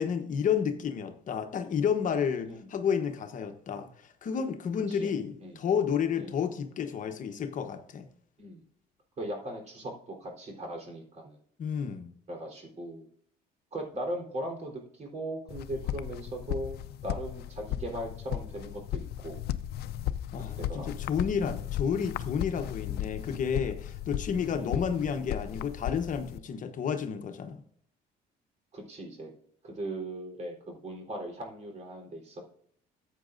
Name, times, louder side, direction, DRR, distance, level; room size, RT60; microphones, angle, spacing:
voice 1, 0.0-8.1 11.6-12.1 20.3-27.6, left 7 dB, 50° left, 6 dB, 1.1 m, -31 dB
voice 2, 9.2-11.4 12.3-13.1 13.7-19.4 20.6-21.0 24.3-24.9 28.7-29.3 29.6-32.4, right 1 dB, 40° right, 1 dB, 3.8 m, -39 dB
sound 1, 15.5-26.4, left 12 dB, 70° left, 0.5 m, -36 dB
14.0 x 8.4 x 2.6 m, 0.64 s
cardioid pair, 110°, 17 cm